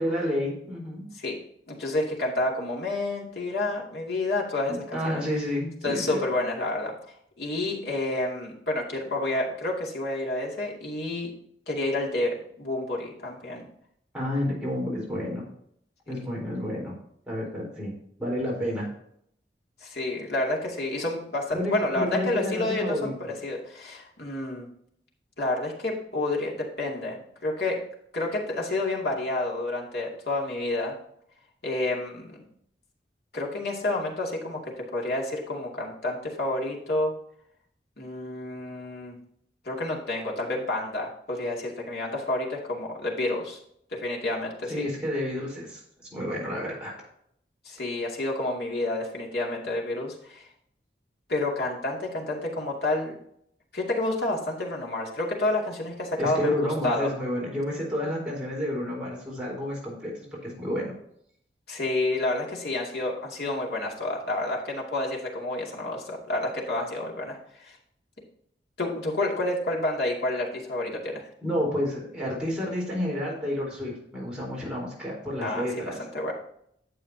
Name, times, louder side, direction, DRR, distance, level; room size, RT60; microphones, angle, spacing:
voice 1, 0.0-1.0 4.7-6.2 14.1-15.4 16.1-16.9 17.3-18.9 21.5-23.3 44.7-45.8 46.1-46.9 56.2-60.1 60.4-60.9 71.4-76.0, left 1 dB, 5° right, -5 dB, 4.2 m, -30 dB
voice 2, 1.7-5.2 5.8-6.9 7.4-11.3 11.7-13.7 19.8-24.7 25.4-27.8 28.1-30.9 31.6-32.4 33.3-37.1 38.0-39.2 39.6-43.6 43.9-44.9 47.6-50.4 51.3-53.1 53.7-56.5 56.8-57.1 61.7-67.8 68.8-71.2 75.4-75.6 76.0-76.3, left 2 dB, 65° left, -2 dB, 2.4 m, -29 dB
11.0 x 7.9 x 2.8 m, 0.69 s
head